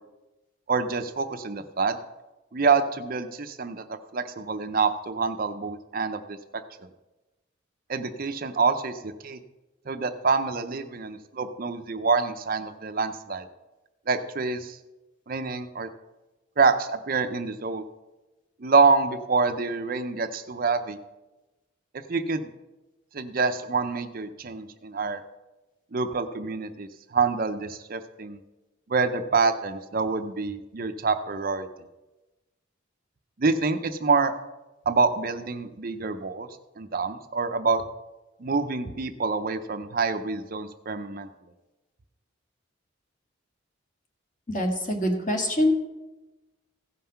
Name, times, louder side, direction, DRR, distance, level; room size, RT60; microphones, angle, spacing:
voice 1, 0.7-2.0 2.5-6.6 7.9-9.4 9.9-13.5 14.1-14.8 15.3-15.9 16.6-17.8 18.6-21.0 21.9-22.5 23.1-25.2 25.9-28.4 28.9-31.7 33.4-34.3 34.9-36.5 36.8-37.8 38.4-41.3, right 4 dB, 45° right, 9 dB, 0.6 m, -26 dB
voice 2, 44.5-45.7, left 1 dB, 40° left, 2 dB, 1.7 m, -24 dB
15.5 x 5.6 x 5.7 m, 1.1 s
head